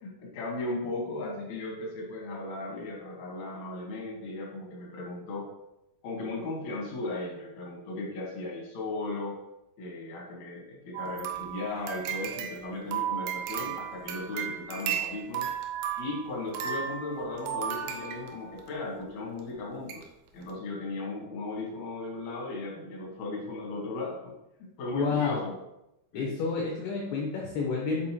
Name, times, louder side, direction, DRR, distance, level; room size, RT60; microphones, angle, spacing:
voice 1, 0.0-5.5 6.0-9.4 9.8-15.5 16.0-20.1 20.3-24.3 24.8-25.5 26.1-26.3, left 2 dB, 65° left, -3 dB, 1.9 m, -36 dB
sound 1, 10.9-18.7 19.4-19.5 19.9-20.0 20.4-20.5, right 9 dB, 85° right, 3.1 m, -35 dB
voice 2, 24.9-25.5 26.2-28.1, left 4 dB, 80° left, -2 dB, 2.3 m, -30 dB
7.7 x 4.2 x 3.0 m, 0.88 s
omnidirectional pair, 5.7 m